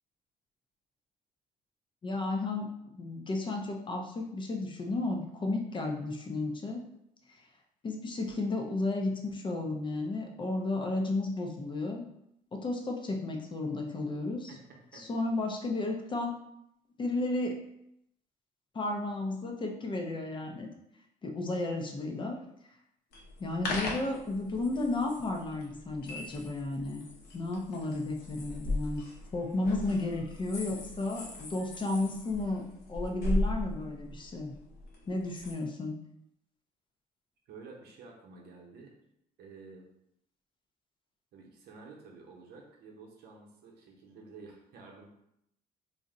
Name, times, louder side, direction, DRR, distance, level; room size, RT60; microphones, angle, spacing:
voice 1, 2.0-6.9 7.8-12.1 12.5-14.5 14.9-16.4 17.0-17.6 18.7-20.7 21.2-22.4 23.4-27.0 27.3-29.0 29.3-34.5 35.1-36.0, left 2 dB, 30° left, 2 dB, 0.5 m, -33 dB
voice 2, 14.5-15.1 37.5-38.9 39.4-39.8 41.3-45.1, right 4 dB, 70° right, 0 dB, 0.8 m, -51 dB
sound 1, 23.1-35.5, left 1 dB, 75° left, 0.8 m, -38 dB
2.6 x 2.1 x 3.7 m, 0.78 s
cardioid pair, 110°, 17 cm